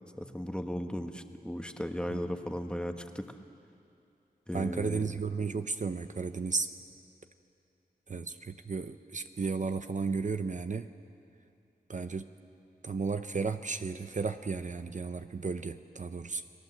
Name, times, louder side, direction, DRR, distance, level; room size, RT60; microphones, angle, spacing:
voice 1, 0.2-3.3 4.5-5.0, equal, 5° left, 6 dB, 1.4 m, -36 dB
voice 2, 4.5-6.7 8.1-10.9 11.9-12.3 12.8-16.4, right 4 dB, 50° right, 9 dB, 0.7 m, -34 dB
30.0 x 20.0 x 7.9 m, 2.6 s
wide cardioid pair, 95°, 16 cm